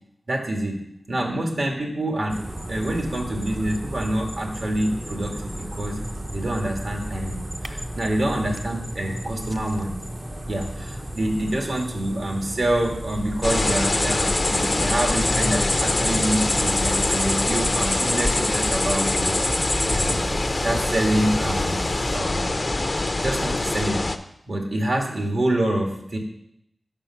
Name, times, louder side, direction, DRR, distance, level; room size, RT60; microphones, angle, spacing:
voice 1, 0.3-2.4 2.7-6.0 6.3-10.0 10.4-19.4 19.9-20.2 20.6-21.8 22.1-22.5 23.2-24.0 24.5-26.2, right 1 dB, 65° right, 1 dB, 2.1 m, -26 dB
sound 1, 2.3-22.2, right 1 dB, 20° right, 0.7 m, -34 dB
sound 2, 13.4-24.2, left 2 dB, 40° left, 0.6 m, -23 dB
8.8 x 6.3 x 5.8 m, 0.78 s
wide cardioid pair, 65°, 0 cm